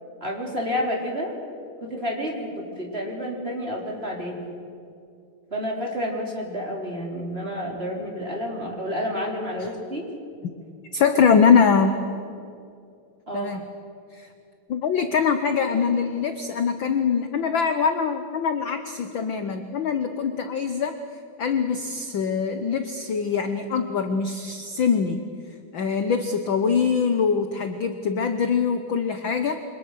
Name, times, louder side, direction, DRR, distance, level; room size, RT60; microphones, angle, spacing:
voice 1, 0.2-1.4 1.8-4.4 5.5-10.1 13.3-13.6, equal, 20° right, -1 dB, 3.8 m, -30 dB
voice 2, 10.9-11.9 13.3-13.6 14.1-14.3 14.7-21.0 21.4-25.2 25.7-29.6, left 6 dB, 65° left, 8 dB, 1.2 m, -23 dB
27.5 x 25.0 x 6.5 m, 2.4 s
omnidirectional pair, 3.4 m